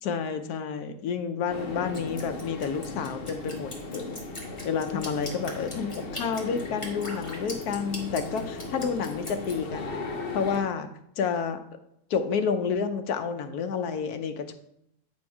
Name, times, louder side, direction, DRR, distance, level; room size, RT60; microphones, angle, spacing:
voice 1, 0.0-4.1 4.6-10.0 10.3-10.9 11.2-11.6 12.1-14.5, left 6 dB, 70° left, 8 dB, 1.1 m, -30 dB
sound 1, 1.5-10.6, left 3 dB, 50° left, 0.7 m, -37 dB
Drip, 1.9-9.5, left 1 dB, 20° left, 1.4 m, -40 dB
8.8 x 4.4 x 4.7 m, 0.76 s
omnidirectional pair, 1.8 m